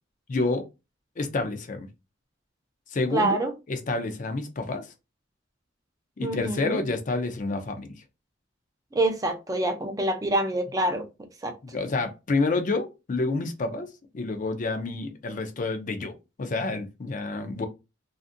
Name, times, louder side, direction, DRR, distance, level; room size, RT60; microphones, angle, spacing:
voice 1, 0.3-0.6 1.2-1.9 2.9-3.4 3.7-4.9 6.2-7.9 11.6-13.9 14.1-17.7, left 3 dB, 40° left, 0.4 m, -29 dB
voice 2, 3.1-3.5 6.2-6.8 8.9-11.5, right 2 dB, 20° right, 0.4 m, -26 dB
2.5 x 2.4 x 2.5 m
head